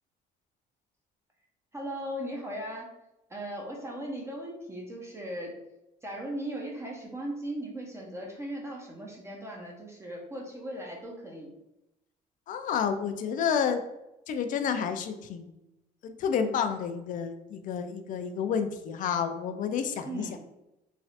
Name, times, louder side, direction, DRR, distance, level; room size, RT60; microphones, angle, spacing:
voice 1, 1.7-2.9 3.3-5.5 6.0-11.5 20.0-20.4, right 1 dB, 15° right, -2 dB, 0.6 m, -38 dB
voice 2, 12.5-13.8 14.3-15.5 16.0-20.4, left 7 dB, 50° left, 7 dB, 0.4 m, -30 dB
3.1 x 2.4 x 2.7 m, 0.91 s
cardioid pair, 110°, 17 cm